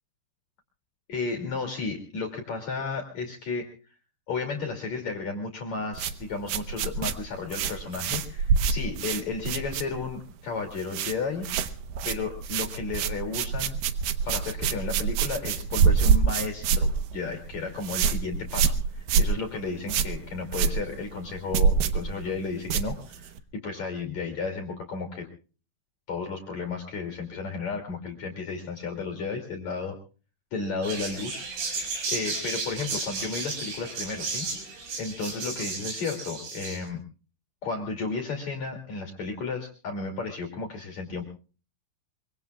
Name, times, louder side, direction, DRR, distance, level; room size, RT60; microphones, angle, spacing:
voice 1, 1.1-3.7 4.3-11.5 12.0-13.8 14.2-25.3 26.1-30.0 30.5-34.5 35.0-37.0 37.6-41.2, left 4 dB, 45° left, 3 dB, 3.2 m, -33 dB
sound 1, 5.9-10.3 10.6-11.2 11.4-23.4, right 6 dB, 85° right, 1.9 m, -26 dB
sound 2, 30.8-36.8, right 4 dB, 70° right, 7.4 m, -34 dB
24.5 x 24.0 x 2.3 m, 0.38 s
omnidirectional pair, 5.3 m